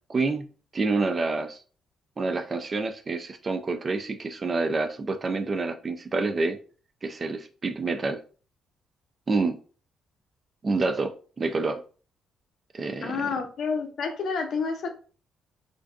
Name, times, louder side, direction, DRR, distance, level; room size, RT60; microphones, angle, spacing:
voice 1, 0.1-0.5 0.7-1.6 2.2-6.6 7.0-8.2 9.3-9.6 10.6-11.1 11.4-11.8 12.7-13.3, right 3 dB, 35° right, 7 dB, 0.4 m, -27 dB
voice 2, 13.0-14.9, left 5 dB, 60° left, 5 dB, 0.5 m, -29 dB
2.5 x 2.2 x 2.4 m, 0.39 s
cardioid pair, 90°, 0 cm